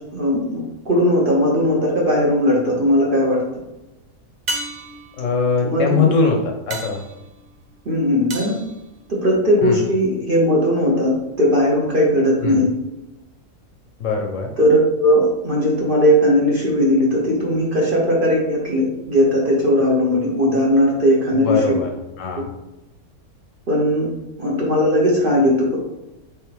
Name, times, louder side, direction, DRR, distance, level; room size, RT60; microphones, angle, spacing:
voice 1, 0.1-3.4 5.6-6.1 7.9-8.5 9.1-12.7 14.6-21.6 23.7-24.1 24.4-25.8, equal, 45° right, -3 dB, 0.8 m, -18 dB
sound 1, 4.5-9.6 14.1-14.2, right 2 dB, 80° right, 0.4 m, -34 dB
voice 2, 5.2-7.0 9.6-9.9 12.4-12.7 14.0-14.5 21.3-21.9 22.2-22.5, left 4 dB, 65° left, 2 dB, 0.9 m, -21 dB
3.5 x 3.4 x 4.5 m, 0.98 s
omnidirectional pair, 1.6 m